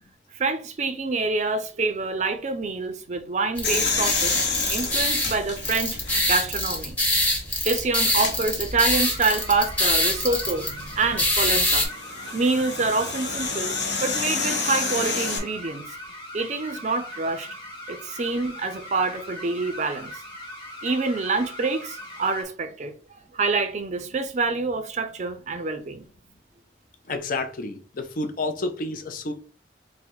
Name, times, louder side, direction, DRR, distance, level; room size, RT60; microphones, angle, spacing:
voice 1, 0.3-4.4 4.7-6.0 6.3-7.0 7.6-11.9 12.3-13.7 14.0-15.9 16.3-17.5 17.9-20.2 20.8-22.9 23.3-26.1, right 3 dB, 40° right, 0.5 m, -26 dB
sound 1, 3.6-6.6 7.1-7.2 8.1-8.4 10.5-15.4, left 4 dB, 70° left, 1.0 m, -29 dB
sound 2, 3.6-11.8, left 1 dB, 10° left, 0.9 m, -25 dB
sound 3, 8.9-22.4, left 1 dB, 25° left, 1.2 m, -40 dB
voice 2, 27.1-29.3, left 2 dB, 50° left, 0.6 m, -30 dB
3.8 x 2.1 x 4.4 m
head